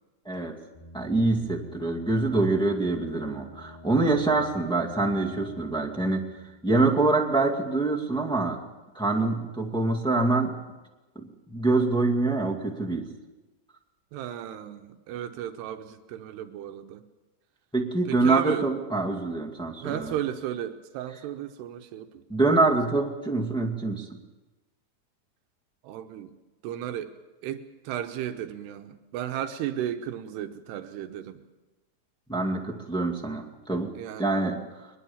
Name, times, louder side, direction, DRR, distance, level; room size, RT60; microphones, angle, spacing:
sound 1, 0.7-7.3, left 1 dB, 65° left, 6.8 m, -48 dB
voice 1, 0.9-6.2 6.6-8.6 8.9-10.5 11.1-13.0 17.7-20.1 22.3-24.0 32.3-33.9 34.2-34.9, right 3 dB, 5° left, -2 dB, 0.5 m, -25 dB
voice 2, 14.1-17.0 18.1-18.7 19.8-22.2 25.8-26.3 26.6-27.2 27.4-31.4 33.9-34.5, right 11 dB, 85° right, 7 dB, 3.0 m, -34 dB
22.0 x 21.0 x 7.2 m, 1.1 s
omnidirectional pair, 4.7 m